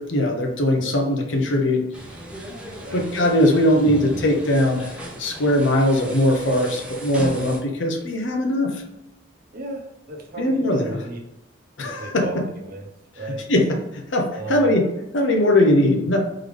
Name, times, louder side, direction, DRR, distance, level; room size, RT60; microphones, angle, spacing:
voice 1, 0.0-1.8 2.9-4.9 5.2-8.8 10.4-11.1 11.8-12.3 13.5-13.8 14.1-14.9 15.1-16.2, left 1 dB, 65° left, 3 dB, 0.7 m, -20 dB
sound 1, 1.9-7.6, right 1 dB, 5° right, 0.8 m, -36 dB
voice 2, 9.5-11.2 11.8-12.9 13.2-13.4 14.3-14.7, right 2 dB, 50° right, 0 dB, 0.8 m, -35 dB
3.8 x 3.2 x 3.3 m, 0.92 s
head